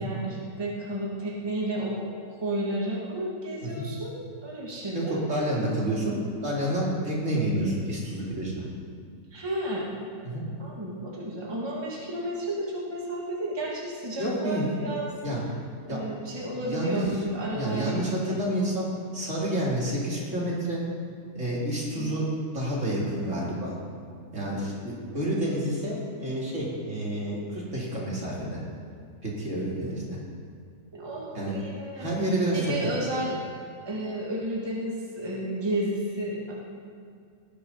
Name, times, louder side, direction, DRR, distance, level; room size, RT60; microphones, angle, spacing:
voice 1, 0.0-5.3 7.5-7.7 9.3-10.1 10.6-15.1 15.9-18.0 18.2-18.4 22.0-22.1 30.9-32.1 32.5-33.4 33.9-36.5, right 1 dB, 15° right, -4 dB, 1.7 m, -32 dB
voice 2, 4.9-6.2 6.4-8.7 10.2-10.4 14.2-14.7 15.2-15.4 15.9-16.0 16.6-17.0 17.5-18.9 19.1-20.8 21.3-23.7 24.3-28.6 29.2-30.2 31.3-31.6 32.0-32.7, right 1 dB, 55° right, -5 dB, 3.0 m, -29 dB
18.5 x 6.8 x 5.5 m, 2.3 s
omnidirectional pair, 1.5 m